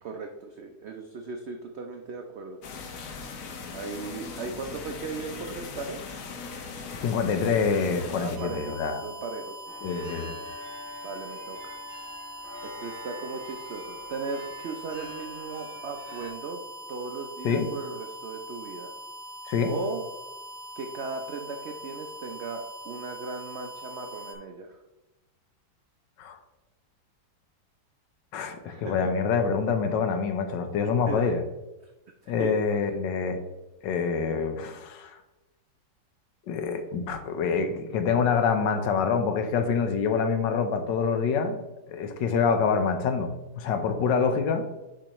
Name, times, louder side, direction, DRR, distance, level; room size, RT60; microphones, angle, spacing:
voice 1, 0.0-2.6 2.9-3.0 3.7-6.0 8.2-10.2 11.0-11.8 12.6-16.6 16.9-18.9 19.7-20.0 20.8-24.8 28.6-29.1 30.8-31.3 32.2-32.6, right 4 dB, 85° right, 3 dB, 0.5 m, -37 dB
sound 1, 2.6-8.4, left 5 dB, 60° left, 1.0 m, -39 dB
voice 2, 6.9-9.0 9.8-10.3 17.4-17.7 19.5-19.7 26.2-26.4 28.3-31.4 32.3-33.4 33.8-35.2 36.5-41.6 41.9-44.6, left 5 dB, 85° left, 7 dB, 1.4 m, -26 dB
sound 2, 8.4-24.3, equal, 55° right, 1.2 m, -42 dB
sound 3, 9.7-16.3, left 1 dB, 5° right, 1.7 m, -45 dB
6.9 x 5.3 x 3.0 m, 1.0 s
omnidirectional pair, 1.9 m